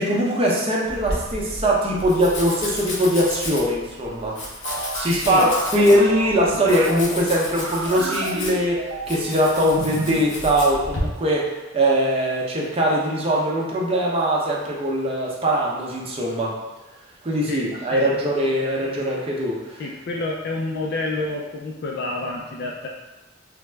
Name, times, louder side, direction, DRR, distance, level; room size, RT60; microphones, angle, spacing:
voice 1, 0.0-4.4 5.0-11.5 11.7-16.5 17.2-19.8, equal, 30° right, -3 dB, 0.6 m, -21 dB
Domestic sounds home sounds, 0.9-11.0, left 1 dB, 75° left, 0.8 m, -33 dB
sound 1, 4.6-7.0 7.5-9.4 9.7-10.3, right 3 dB, 85° right, 0.3 m, -31 dB
voice 2, 5.1-5.5 5.9-6.0 17.4-18.1 19.8-22.9, left 2 dB, 55° left, -1 dB, 0.4 m, -29 dB
3.4 x 2.0 x 3.2 m, 1.1 s
head